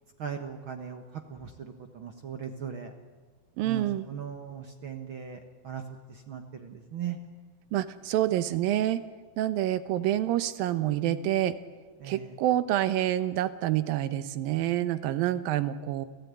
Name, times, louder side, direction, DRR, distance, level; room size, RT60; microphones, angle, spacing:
voice 1, 0.2-1.0 1.3-2.9 3.6-5.4 5.6-5.8 6.1-7.2 12.0-12.3, right 8 dB, 60° right, 6 dB, 1.4 m, -38 dB
voice 2, 3.6-4.1 7.7-9.0 9.4-11.6 12.0-16.1, right 13 dB, 85° right, 13 dB, 2.7 m, -27 dB
29.5 x 16.0 x 9.6 m, 1.4 s
omnidirectional pair, 4.1 m